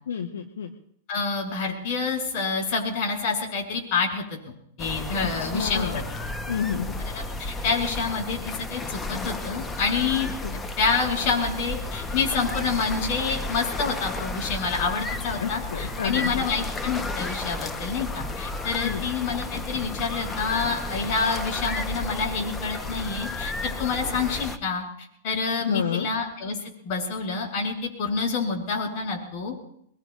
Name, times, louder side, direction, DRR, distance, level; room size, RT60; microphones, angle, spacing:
voice 1, 0.1-0.7 5.4-6.0 6.5-6.9 10.4-10.5 15.4-16.4 18.8-19.0 25.6-26.1, left 7 dB, 75° left, 4 dB, 1.2 m, -29 dB
voice 2, 1.1-4.4 4.8-6.0 7.0-10.3 10.8-24.8 25.2-26.6 26.8-29.5, left 5 dB, 50° left, -1 dB, 7.8 m, -27 dB
sound 1, 4.8-24.6, left 2 dB, 15° left, 1.0 m, -33 dB
25.5 x 22.0 x 2.5 m, 0.70 s
hypercardioid pair, 105°, 0 cm